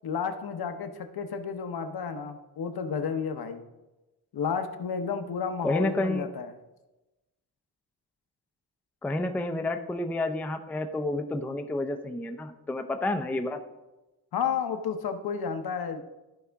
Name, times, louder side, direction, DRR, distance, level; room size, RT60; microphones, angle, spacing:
voice 1, 0.0-3.6 4.3-6.5 14.3-16.0, left 6 dB, 70° left, 7 dB, 0.8 m, -31 dB
voice 2, 5.6-6.3 9.0-13.6, left 2 dB, 5° left, 6 dB, 0.4 m, -30 dB
13.5 x 4.8 x 3.4 m, 1.1 s
wide cardioid pair, 175°, 39 cm